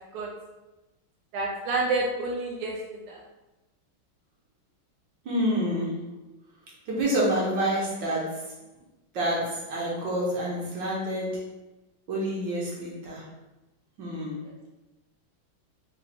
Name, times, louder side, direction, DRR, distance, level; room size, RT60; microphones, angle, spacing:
voice 1, 1.3-3.2, right 3 dB, 85° right, -1 dB, 1.5 m, -29 dB
voice 2, 5.2-6.0 6.9-8.4 9.1-11.4 12.1-13.2 14.0-14.4, equal, 65° right, -5 dB, 1.6 m, -28 dB
4.1 x 2.7 x 4.1 m, 1.1 s
omnidirectional pair, 2.3 m